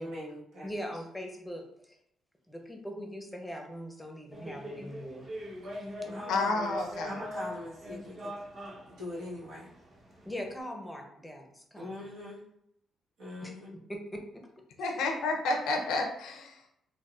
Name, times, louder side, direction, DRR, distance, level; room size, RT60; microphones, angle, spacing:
voice 1, 0.0-1.0 5.6-8.3 8.9-9.7 11.8-12.4 13.2-13.8, left 1 dB, 90° right, -7 dB, 1.3 m, -42 dB
voice 2, 0.6-2.0 2.5-5.3 10.3-11.9 13.4-13.5 13.9-14.4, equal, 10° left, 3 dB, 0.6 m, -41 dB
sound 1, 4.3-10.6, left 1 dB, 40° right, 0.8 m, -42 dB
voice 3, 6.3-7.2 14.8-16.8, left 3 dB, 85° left, 4 dB, 0.5 m, -31 dB
4.0 x 2.2 x 2.3 m, 0.77 s
cardioid pair, 90°, 0 cm